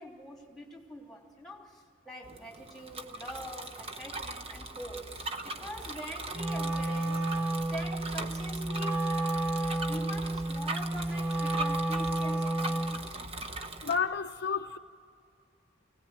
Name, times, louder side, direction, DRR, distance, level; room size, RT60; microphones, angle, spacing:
voice 1, 0.0-7.4 7.7-9.0 9.9-13.1, equal, ahead, 3.1 m, -44 dB
Bicycle, 2.2-14.0, right 2 dB, 30° right, 1.0 m, -40 dB
Wind instrument woodwind instrument, 6.3-13.1, right 2 dB, 15° right, 1.7 m, -31 dB
voice 2, 13.8-14.8, left 6 dB, 60° left, 0.5 m, -30 dB
24.5 x 17.5 x 9.2 m
head